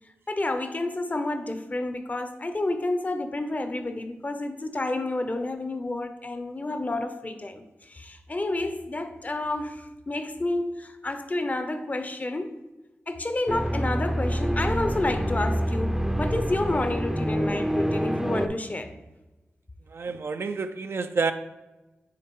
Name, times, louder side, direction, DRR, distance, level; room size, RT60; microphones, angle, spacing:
voice 1, 0.3-12.6 13.1-18.9, left 2 dB, 35° left, 0.6 m, -30 dB
sound 1, 13.5-18.5, equal, 5° right, 0.5 m, -27 dB
voice 2, 19.9-21.3, right 4 dB, 65° right, 0.4 m, -28 dB
8.6 x 3.5 x 3.1 m
cardioid pair, 45°, 5 cm